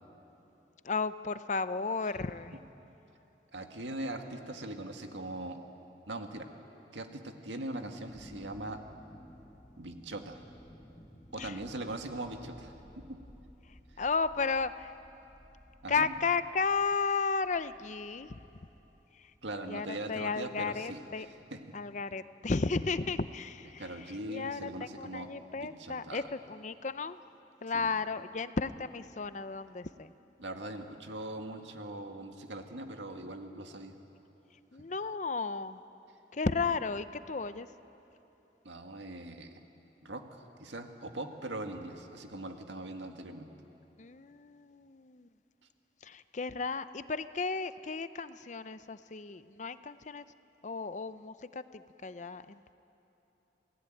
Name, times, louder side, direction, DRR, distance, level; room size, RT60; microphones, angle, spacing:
voice 1, 0.8-2.6 11.4-11.6 14.0-15.0 15.9-18.4 19.1-19.3 19.7-21.3 21.7-23.8 24.3-27.2 27.6-30.1 34.7-35.8 36.3-37.7 44.0-45.3 46.0-50.2 50.6-52.7, left 4 dB, 40° left, 13 dB, 0.6 m, -34 dB
voice 2, 3.5-5.6 6.1-6.5 6.9-8.8 9.8-10.4 11.3-13.2 15.8-16.1 19.4-21.6 23.8-25.3 25.6-26.3 27.7-27.9 30.4-33.9 38.6-39.6 40.0-43.5, right 1 dB, 85° right, 4 dB, 2.0 m, -41 dB
sound 1, 8.1-21.7, equal, 10° left, 1.3 m, -56 dB
28.0 x 18.5 x 9.2 m, 3.0 s
head